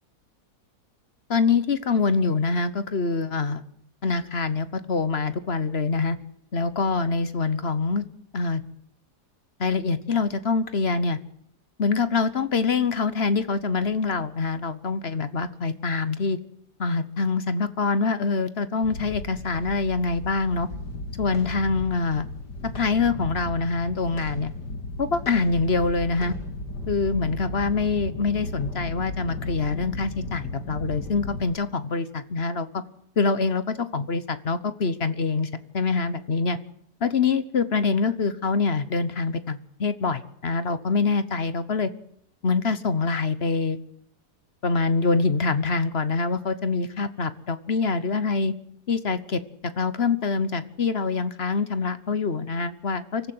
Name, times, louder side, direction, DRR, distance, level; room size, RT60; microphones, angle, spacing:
voice 1, 1.3-3.6 4.0-6.2 6.5-8.0 8.3-8.6 9.6-11.2 11.8-16.4 16.8-20.7 21.2-22.3 22.7-24.5 25.0-26.3 26.9-32.8 33.2-36.6 37.0-41.9 42.4-43.8 44.6-48.5 48.9-53.2, left 4 dB, 40° left, 13 dB, 1.3 m, -25 dB
sound 1, 18.8-31.4, left 2 dB, 80° left, 3.0 m, -35 dB
24.5 x 14.5 x 7.9 m, 0.71 s
omnidirectional pair, 1.8 m